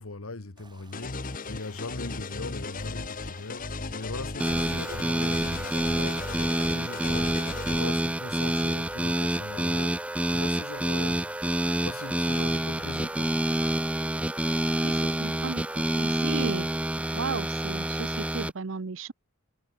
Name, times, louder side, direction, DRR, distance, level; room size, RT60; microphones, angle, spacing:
voice 1, 0.0-6.3 6.6-7.4 7.7-13.3, left 3 dB, 80° left, 1.5 m, -40 dB
sound 1, 0.6-9.8, right 1 dB, 20° right, 3.5 m, -53 dB
sound 2, 0.9-7.8, left 3 dB, 40° left, 1.2 m, -36 dB
sound 3, 4.4-18.5, right 1 dB, 5° right, 0.7 m, -28 dB
voice 2, 14.8-16.7 17.1-19.1, right 4 dB, 65° right, 0.7 m, -35 dB
head